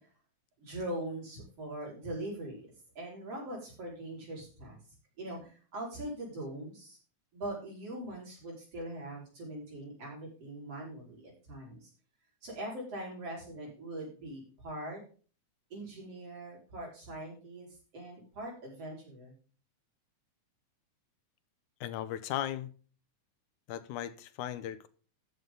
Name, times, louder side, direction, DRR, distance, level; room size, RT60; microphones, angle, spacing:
voice 1, 0.6-2.7 3.0-4.8 5.2-7.0 7.3-11.9 12.4-15.0 15.7-17.7 17.9-19.3, right 1 dB, 50° right, 6.2 m, -41 dB
voice 2, 21.8-22.7 23.7-24.9, left 11 dB, 85° left, 2.3 m, -37 dB
13.5 x 7.7 x 3.9 m
omnidirectional pair, 3.4 m